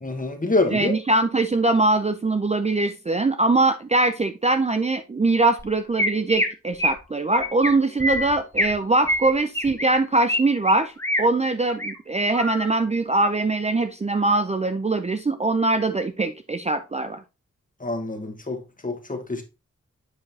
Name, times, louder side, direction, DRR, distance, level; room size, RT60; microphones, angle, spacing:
voice 1, 0.0-0.9 17.8-19.4, left 2 dB, 25° left, 1.4 m, -26 dB
voice 2, 0.7-17.2, right 2 dB, 25° right, 0.5 m, -22 dB
Chirp tweet, 5.6-5.7 6.0-6.5 6.8-7.0 7.3-7.7 8.0-8.7 9.1-10.4 10.7-11.2 11.6-11.9 12.3-12.7, left 1 dB, 10° left, 1.1 m, -25 dB
8.3 x 5.0 x 2.7 m
wide cardioid pair, 110°, 30 cm